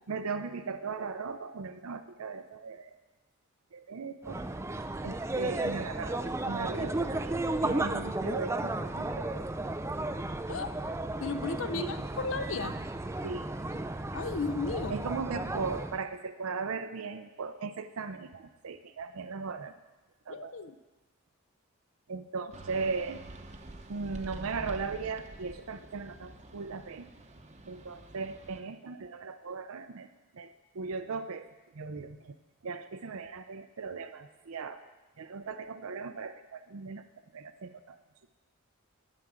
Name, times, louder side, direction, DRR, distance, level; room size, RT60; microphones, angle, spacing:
voice 1, 0.1-3.0 3.7-4.4 5.0-9.5 9.9-10.0 11.7-12.1 13.2-13.8 14.9-19.7 20.3-20.6 22.1-23.2 23.9-27.1 27.7-30.1 30.3-31.5 31.7-32.3 32.6-34.8 35.2-37.0 37.3-38.0, right 4 dB, 75° right, 10 dB, 0.5 m, -38 dB
sound 1, 4.2-16.0, right 2 dB, 10° right, 0.3 m, -34 dB
voice 2, 11.2-12.8 14.1-14.9 20.3-20.8, left 4 dB, 60° left, 10 dB, 0.6 m, -34 dB
sound 2, 22.5-28.6, right 1 dB, 30° right, 0.8 m, -47 dB
11.5 x 6.2 x 8.6 m, 1.1 s
head